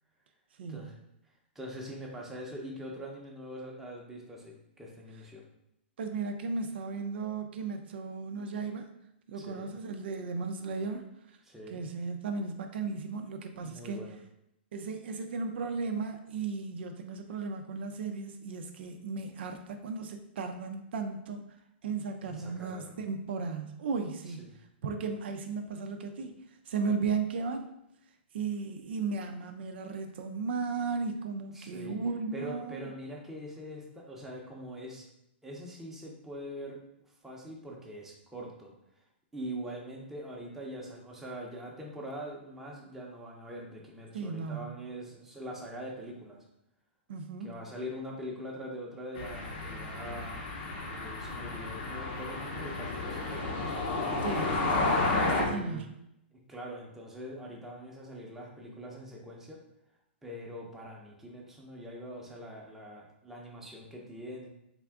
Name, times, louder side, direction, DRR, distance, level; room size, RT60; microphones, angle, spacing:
voice 1, 0.6-0.9 6.0-8.9 9.3-11.0 11.7-14.0 14.7-21.4 21.8-24.5 24.8-27.7 28.3-32.9 44.1-44.7 47.1-47.6 54.2-55.9, right 4 dB, 65° right, 6 dB, 0.4 m, -35 dB
voice 2, 1.5-5.4 9.3-9.7 11.4-11.8 13.6-14.2 22.2-22.9 24.3-24.5 31.5-31.9 32.3-35.0 35.4-36.8 37.2-38.7 39.3-46.4 47.4-50.5 50.8-53.8 55.3-55.9 56.3-59.6 60.2-64.5, equal, 5° right, -3 dB, 0.7 m, -43 dB
sound 1, 49.2-55.5, left 3 dB, 55° left, 0.8 m, -32 dB
3.4 x 2.4 x 3.5 m, 0.80 s
hypercardioid pair, 140°, 6 cm